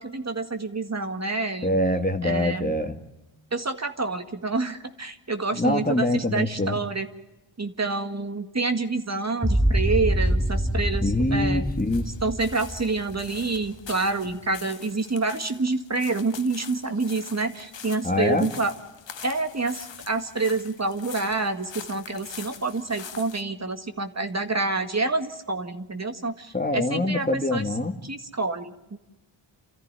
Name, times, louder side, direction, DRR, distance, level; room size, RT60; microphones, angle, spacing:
voice 1, 0.0-1.8 2.2-2.7 3.5-7.1 7.6-11.7 12.2-18.7 19.2-27.7 28.0-29.0, right 3 dB, 35° right, 7 dB, 1.9 m, -28 dB
voice 2, 1.6-3.0 5.5-6.8 11.0-12.1 18.0-18.5 26.5-28.0, left 1 dB, 20° left, 6 dB, 1.9 m, -24 dB
sound 1, 9.4-13.8, equal, 5° right, 1.0 m, -25 dB
sound 2, 9.7-23.4, left 7 dB, 65° left, 1.5 m, -45 dB
28.5 x 14.0 x 9.8 m, 0.99 s
cardioid pair, 65°, 47 cm